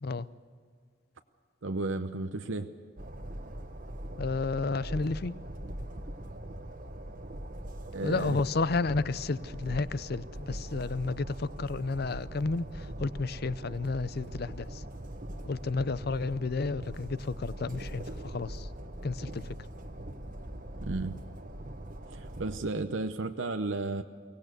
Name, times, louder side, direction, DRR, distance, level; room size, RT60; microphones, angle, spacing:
voice 1, 1.6-2.7 7.9-8.4 20.8-21.2 22.1-24.0, right 3 dB, 75° right, 7 dB, 0.8 m, -33 dB
Train, 3.0-22.6, right 1 dB, 45° right, 1.3 m, -41 dB
voice 2, 4.2-5.3 8.0-14.8 15.5-18.7 19.0-19.6, left 3 dB, 55° left, 17 dB, 0.6 m, -32 dB
23.5 x 18.0 x 6.7 m, 2.1 s
head